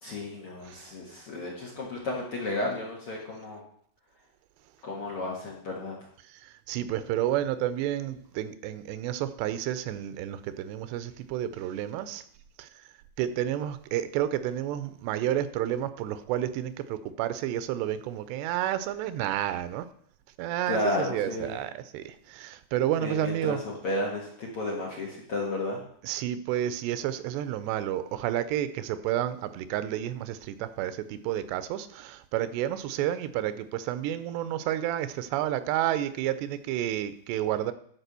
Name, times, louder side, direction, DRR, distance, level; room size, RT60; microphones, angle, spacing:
voice 1, 0.0-3.6 4.8-6.0 20.7-21.6 23.0-25.8, left 2 dB, 50° left, -3 dB, 1.8 m, -32 dB
voice 2, 6.2-12.2 12.6-12.7 13.2-19.9 20.4-23.6 26.0-37.7, right 12 dB, 90° right, 13 dB, 2.8 m, -30 dB
11.5 x 4.5 x 6.7 m, 0.64 s
omnidirectional pair, 4.7 m